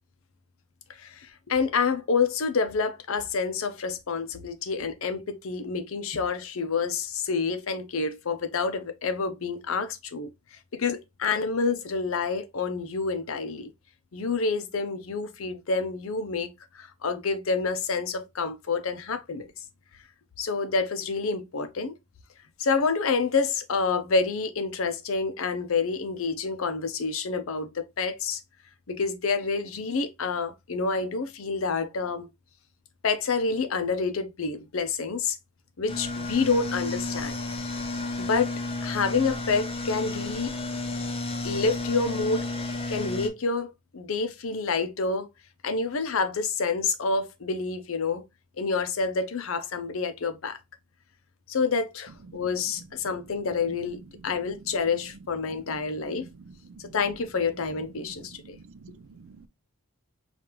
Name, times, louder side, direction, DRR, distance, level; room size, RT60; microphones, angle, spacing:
voice 1, 0.9-10.3 10.7-13.7 14.1-19.6 20.4-21.9 22.6-28.4 28.9-32.3 33.0-35.4 35.8-37.4 38.2-38.5 38.8-40.5 41.4-42.5 42.9-45.3 45.6-48.2 48.6-50.6 51.5-56.3 56.8-58.6, left 4 dB, 70° left, 0.6 m, -28 dB
sound 1, 35.9-43.3, left 2 dB, 25° left, 0.5 m, -32 dB
voice 2, 56.2-57.0 58.0-59.5, right 4 dB, 65° right, 0.4 m, -49 dB
5.0 x 2.4 x 2.9 m
head